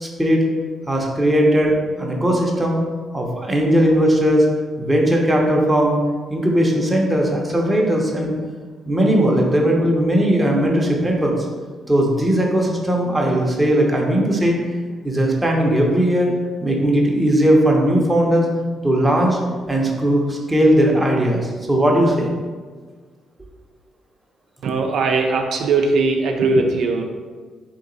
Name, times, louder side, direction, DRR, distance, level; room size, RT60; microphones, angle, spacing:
voice 1, 0.0-0.5 0.9-2.8 3.1-4.5 4.8-6.0 6.3-8.3 8.9-11.5 11.9-14.6 15.0-16.3 16.6-18.5 18.8-19.4 19.7-22.3, right 1 dB, 10° right, -1 dB, 0.8 m, -18 dB
voice 2, 24.6-27.1, right 3 dB, 70° right, 3 dB, 0.4 m, -19 dB
3.5 x 2.9 x 3.9 m, 1.5 s
cardioid pair, 90°, 0 cm